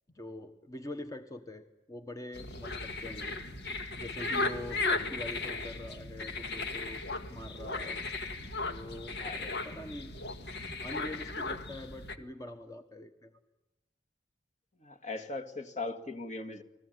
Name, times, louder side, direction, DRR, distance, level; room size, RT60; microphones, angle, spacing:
voice 1, 0.1-3.4 3.9-7.0 7.3-8.0 8.7-9.2 9.6-10.2 10.8-13.4, left 1 dB, 20° left, 6 dB, 1.2 m, -44 dB
sound 1, 2.3-12.2, left 3 dB, 70° left, 1.8 m, -36 dB
voice 2, 3.0-3.4 4.9-5.2 8.4-8.7 9.2-9.7 14.8-16.6, left 3 dB, 45° left, 5 dB, 2.1 m, -40 dB
29.5 x 20.0 x 9.4 m, 0.95 s
head